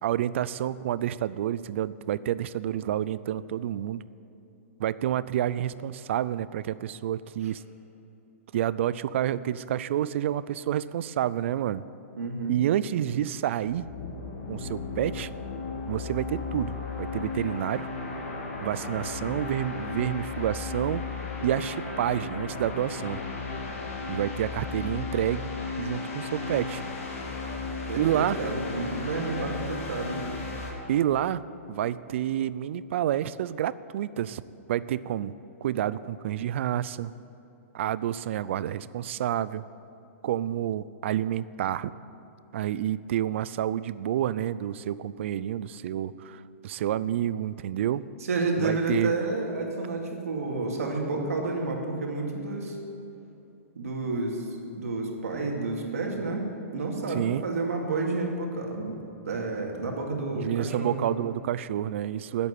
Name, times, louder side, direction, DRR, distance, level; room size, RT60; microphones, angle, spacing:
voice 1, 0.0-4.0 4.8-7.6 8.5-11.8 12.5-13.9 14.5-15.3 15.9-17.9 18.6-21.0 21.4-23.2 24.1-25.5 25.8-26.8 27.9-28.4 30.9-31.4 31.7-34.4 34.7-35.3 35.6-37.1 37.7-39.6 40.2-41.9 42.5-48.0 48.6-49.1 57.1-57.4 60.3-62.5, right 11 dB, 60° right, 17 dB, 0.4 m, -29 dB
voice 2, 12.2-12.6 27.9-30.2 48.2-52.8 53.8-54.4 54.7-56.5 56.7-61.1, right 3 dB, 85° right, 1 dB, 2.4 m, -30 dB
sound 1, 13.7-30.7, left 4 dB, 70° left, 2.8 m, -35 dB
11.0 x 8.3 x 8.9 m, 2.9 s
hypercardioid pair, 150°, 8 cm